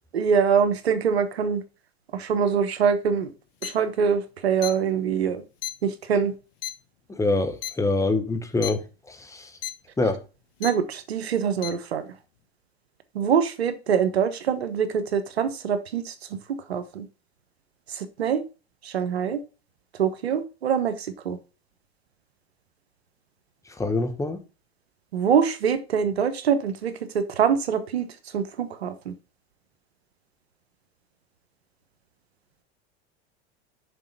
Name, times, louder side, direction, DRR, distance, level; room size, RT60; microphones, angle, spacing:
voice 1, 0.1-1.6 2.1-3.3 3.6-5.4 5.8-6.3 10.6-12.0 13.1-17.1 17.9-18.4 18.8-19.4 20.0-21.4 25.1-28.1 28.3-29.1, right 7 dB, 90° right, 1.1 m, -24 dB
sound 1, 3.6-3.7 4.6-4.7 5.6-5.7 6.6-6.7 7.6-7.7 8.6-8.7 9.6-9.7 10.6-10.7 11.6-11.7, left 13 dB, 65° left, 0.9 m, -30 dB
voice 2, 7.1-8.8 9.1-9.5 10.0-10.2 23.8-24.4, left 2 dB, 10° left, 1.3 m, -25 dB
6.7 x 4.1 x 5.2 m
hypercardioid pair, 100°, 31 cm